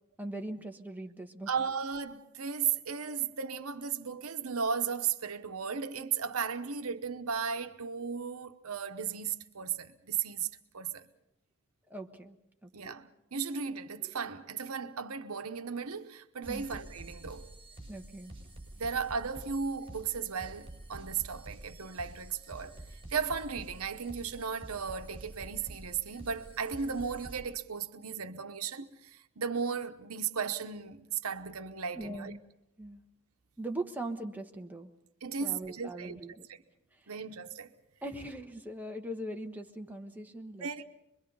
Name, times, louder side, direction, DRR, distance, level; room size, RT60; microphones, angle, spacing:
voice 1, 0.2-1.5 11.9-13.0 16.5-16.7 17.9-18.3 31.9-32.4 32.8-33.0 33.6-34.9 35.4-36.5 38.0-40.8, right 1 dB, 10° right, 1.2 m, -41 dB
voice 2, 1.5-10.5 10.7-11.1 12.7-17.5 18.8-22.7 23.1-32.3 35.2-36.2 36.5-36.6 37.1-37.7 40.6-40.8, right 6 dB, 85° right, 1.0 m, -35 dB
sound 1, 16.4-27.4, right 1 dB, 25° right, 6.2 m, -48 dB
25.5 x 22.5 x 5.5 m
head